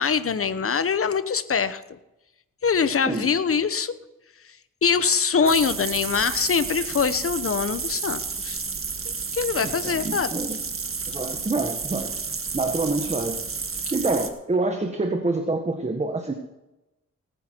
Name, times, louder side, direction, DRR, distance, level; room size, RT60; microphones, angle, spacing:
voice 1, 0.0-2.0 2.6-3.9 4.8-8.6 9.3-10.3, left 6 dB, 45° left, 13 dB, 1.1 m, -23 dB
sound 1, 5.5-14.3, right 5 dB, 45° right, 1.8 m, -31 dB
voice 2, 9.6-10.6 11.1-12.1 12.5-13.4 13.9-16.3, right 2 dB, 20° right, 5 dB, 1.5 m, -26 dB
19.0 x 9.4 x 4.6 m, 0.96 s
cardioid pair, 75°, 31 cm